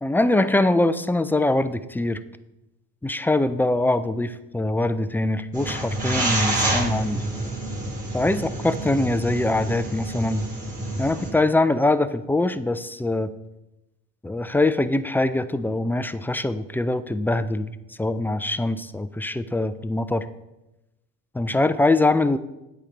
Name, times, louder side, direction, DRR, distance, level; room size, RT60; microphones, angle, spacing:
voice 1, 0.0-2.2 3.0-7.2 8.1-10.5 11.0-13.3 14.2-17.7 18.0-20.3 21.3-22.4, left 2 dB, 5° left, 12 dB, 0.3 m, -23 dB
sound 1, 5.5-11.3, right 1 dB, 20° right, 3.5 m, -28 dB
9.1 x 8.4 x 3.3 m, 0.95 s
supercardioid pair, 75°, 39 cm